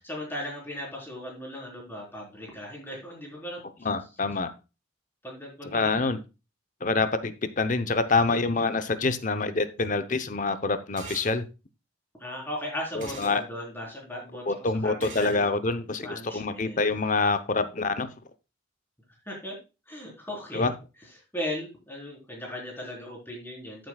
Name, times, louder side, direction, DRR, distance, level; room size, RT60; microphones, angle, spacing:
voice 1, 0.0-3.9 5.2-6.0 12.2-15.5 16.0-16.9 19.3-19.6 19.9-20.7 21.3-23.9, left 1 dB, 10° left, -2 dB, 4.0 m, -37 dB
voice 2, 3.8-4.5 5.7-6.2 6.8-11.4 12.9-13.4 14.5-18.1 20.5-20.7, left 3 dB, 40° left, 11 dB, 0.8 m, -26 dB
sound 1, 11.0-11.3 13.0-13.4 15.0-15.4, right 3 dB, 40° right, 3.5 m, -41 dB
13.5 x 7.8 x 2.3 m, 0.28 s
head